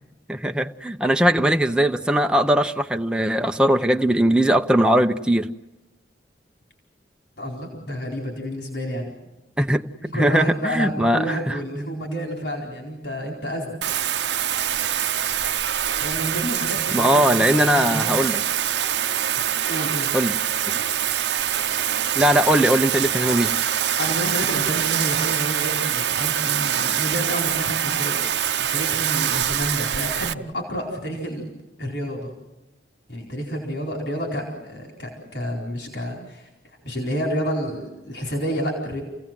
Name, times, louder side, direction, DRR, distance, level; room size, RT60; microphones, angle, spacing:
voice 1, 0.3-5.6 9.6-9.8 10.1-11.5 16.9-18.4 20.1-20.4 20.7-20.8 22.2-23.6, equal, 5° right, 5 dB, 0.7 m, -20 dB
voice 2, 7.4-9.1 10.0-13.8 16.0-18.2 19.5-20.1 24.0-28.3 28.6-31.5 31.8-32.3 33.1-36.5 36.8-39.0, equal, 85° left, 0 dB, 4.5 m, -29 dB
Bathtub (filling or washing), 13.8-30.3, right 10 dB, 80° right, 0.7 m, -24 dB
29.5 x 17.0 x 7.6 m, 1.1 s
head